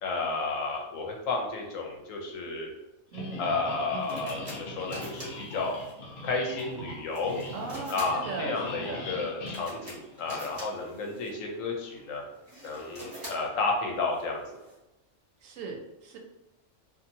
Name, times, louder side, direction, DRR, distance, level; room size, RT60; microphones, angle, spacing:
voice 1, 0.0-2.7 3.4-5.7 6.2-7.4 7.9-12.2 12.6-14.6, left 3 dB, 85° left, 0 dB, 1.1 m, -32 dB
sound 1, 3.1-10.6, left 2 dB, 60° left, 0.9 m, -41 dB
voice 2, 3.1-3.5 3.9-4.2 7.5-9.1 15.4-16.2, right 4 dB, 85° right, 1 dB, 1.0 m, -38 dB
sound 2, 3.6-14.8, equal, 30° right, 1.1 m, -47 dB
2.7 x 2.4 x 2.7 m, 0.94 s
omnidirectional pair, 1.3 m